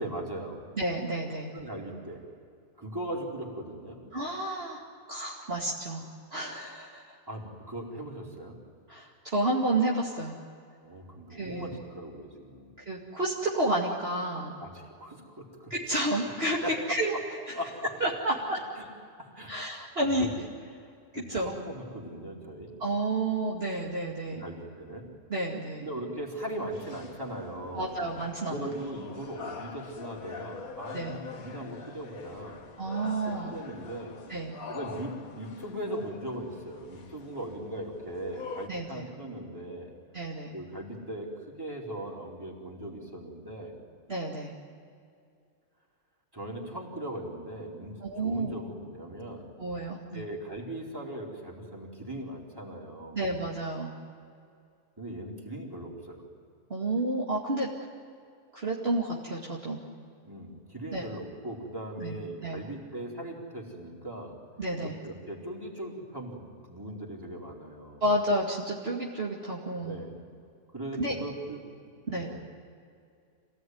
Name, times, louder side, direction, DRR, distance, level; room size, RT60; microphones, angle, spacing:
voice 1, 0.0-0.6 1.5-2.2 2.8-4.0 7.3-8.5 10.8-12.7 14.6-15.7 16.6-17.2 17.5-17.9 18.8-18.9 19.2-20.3 21.1-22.7 24.4-25.1 25.8-27.9 28.5-32.6 33.2-34.2 34.7-39.9 40.5-43.7 46.3-49.5 50.1-53.2 55.0-56.3 60.2-64.4 64.8-68.0 69.8-70.2 70.7-71.6 72.1-72.4, right 1 dB, 15° right, -2 dB, 4.3 m, -39 dB
voice 2, 0.8-1.5 4.1-4.8 5.1-6.0 6.3-7.1 8.9-10.3 11.3-11.8 12.8-14.5 15.7-16.6 16.9-17.1 17.5-17.6 18.0-18.6 19.5-20.3 21.1-21.5 22.8-24.4 25.3-25.9 27.7-28.7 30.9-31.2 32.8-33.5 34.3-34.5 38.7-39.1 40.1-40.5 44.1-44.5 48.0-48.5 49.6-50.2 53.1-53.9 56.7-57.7 58.5-59.8 60.9-61.1 62.0-62.6 64.6-65.0 68.0-70.0 71.0-71.1 72.1-72.3, right 1 dB, 40° right, -4 dB, 2.6 m, -30 dB
sound 1, 26.4-38.7, left 5 dB, 65° left, 1.9 m, -45 dB
27.5 x 18.0 x 9.5 m, 2.4 s
omnidirectional pair, 1.6 m